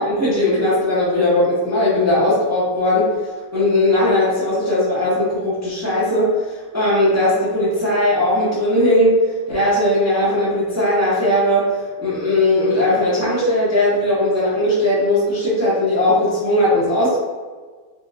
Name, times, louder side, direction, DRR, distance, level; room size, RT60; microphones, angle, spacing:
voice 1, 0.0-3.1 3.5-17.2, left 1 dB, 20° right, -9 dB, 0.4 m, -18 dB
4.2 x 2.5 x 2.8 m, 1.5 s
omnidirectional pair, 2.2 m